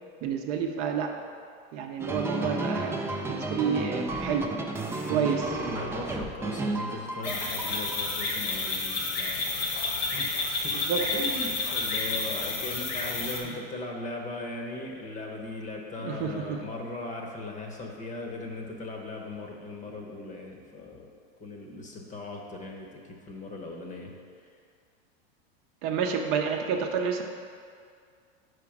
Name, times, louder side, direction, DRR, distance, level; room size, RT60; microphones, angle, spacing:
voice 1, 0.2-1.1 1.7-4.5 5.1-5.5 10.9-11.0 13.4-13.5 16.0-16.6 25.8-27.2, right 6 dB, 50° right, 3 dB, 0.7 m, -29 dB
sound 1, 2.0-8.0, right 2 dB, 10° right, 0.4 m, -32 dB
voice 2, 5.1-9.7 10.0-10.3 10.6-10.8 11.1-21.1 21.4-24.1, left 2 dB, 25° left, 1 dB, 0.9 m, -38 dB
sound 2, 7.2-13.4, left 3 dB, 75° left, 1.5 m, -30 dB
5.0 x 4.9 x 5.9 m, 2.2 s
supercardioid pair, 125°, 31 cm